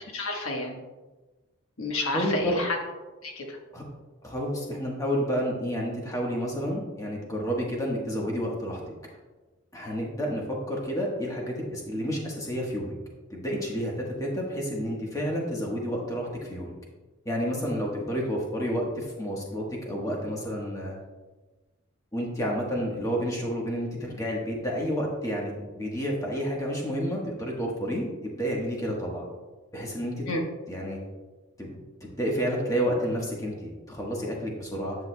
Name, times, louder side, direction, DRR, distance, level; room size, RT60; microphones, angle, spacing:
voice 1, 0.1-0.8 1.8-2.8 3.2-3.6 30.3-30.4, left 2 dB, 80° left, 1 dB, 1.4 m, -30 dB
voice 2, 2.1-2.6 3.7-3.8 4.2-8.8 9.7-12.9 13.3-16.7 17.2-20.9 22.1-29.3 29.7-30.3 30.7-31.0 31.6-35.0, equal, 15° left, -2 dB, 1.3 m, -30 dB
10.5 x 8.0 x 2.3 m, 1.2 s
head